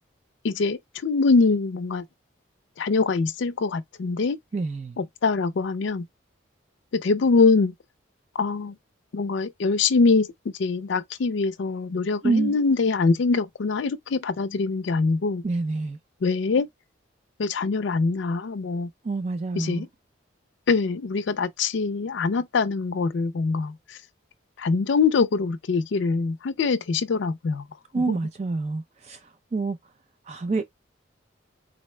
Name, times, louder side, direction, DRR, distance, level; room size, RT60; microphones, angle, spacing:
voice 1, 0.4-2.0 2.8-4.4 5.0-6.1 6.9-7.7 8.4-8.8 9.1-10.3 10.6-15.4 16.2-16.7 17.4-18.9 19.6-19.9 20.7-24.0 24.6-27.7 28.0-28.2, left 4 dB, 70° left, 0.4 m, -23 dB
voice 2, 4.5-5.0 12.2-12.6 15.4-16.0 19.0-19.9 27.9-29.2 29.5-29.8 30.3-30.6, right 3 dB, 35° right, 0.3 m, -27 dB
3.9 x 2.1 x 3.1 m
head